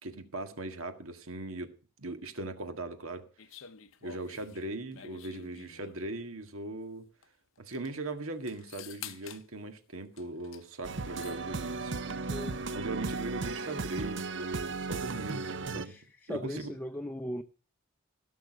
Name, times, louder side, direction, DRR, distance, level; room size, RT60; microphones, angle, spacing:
voice 1, 0.0-1.7 2.0-3.2 4.0-7.1 7.6-15.9 16.3-16.7, right 2 dB, 85° right, 1.7 m, -39 dB
sound 1, 3.4-6.2 7.2-7.3 7.6-7.9 8.5-9.5 10.2-10.7 10.9-11.4, left 9 dB, 70° left, 0.7 m, -49 dB
sound 2, 10.8-15.9, right 3 dB, 60° right, 0.7 m, -36 dB
voice 2, 15.8-17.4, equal, 10° left, 0.5 m, -38 dB
16.5 x 6.4 x 6.2 m
head